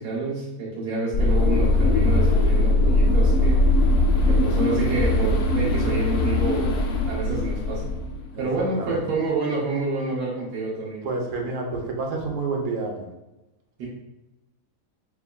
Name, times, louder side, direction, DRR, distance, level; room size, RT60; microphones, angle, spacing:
voice 1, 0.0-3.7 4.3-6.8 7.1-8.0 8.4-11.0 13.8-13.9, right 3 dB, 85° right, -5 dB, 1.4 m, -28 dB
sound 1, 1.1-8.5, left 2 dB, 70° left, 0.5 m, -20 dB
voice 2, 11.0-13.1, right 3 dB, 60° right, 1 dB, 1.1 m, -29 dB
4.6 x 4.0 x 2.2 m, 0.97 s
omnidirectional pair, 1.7 m